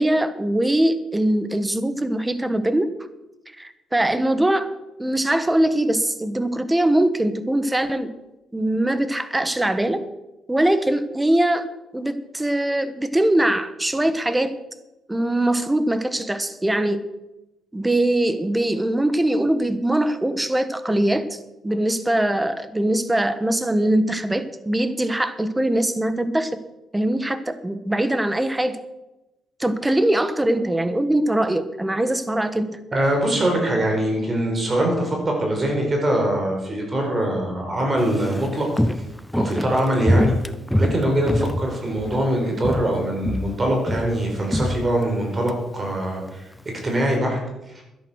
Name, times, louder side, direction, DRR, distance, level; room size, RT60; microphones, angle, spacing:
voice 1, 0.0-2.9 3.6-4.7 5.0-8.1 8.5-10.0 10.5-11.7 11.9-14.5 15.1-17.0 17.7-26.6 26.9-28.8 29.6-32.8, right 1 dB, 10° right, 11 dB, 1.3 m, -22 dB
voice 2, 32.9-38.7 39.4-40.3 40.7-46.5 46.8-47.4 47.7-47.8, right 1 dB, 30° right, 1 dB, 4.6 m, -23 dB
Walk footsteps, 38.0-42.3 42.6-43.0 43.2-45.6 45.9-46.0, equal, 5° left, 0.7 m, -24 dB
12.0 x 10.5 x 6.4 m, 0.96 s
cardioid pair, 90°, 0 cm